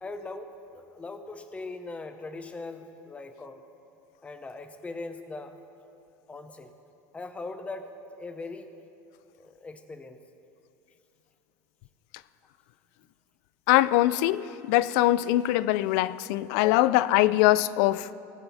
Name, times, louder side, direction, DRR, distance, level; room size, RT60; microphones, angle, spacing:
voice 1, 0.0-3.6 4.2-5.5 6.3-6.7 7.1-8.7 9.4-10.2 16.7-16.8, left 3 dB, 15° left, 8 dB, 0.8 m, -40 dB
voice 2, 13.7-18.2, left 15 dB, 75° left, 18 dB, 0.4 m, -22 dB
18.5 x 7.8 x 4.2 m, 2.8 s
supercardioid pair, 125°, 8 cm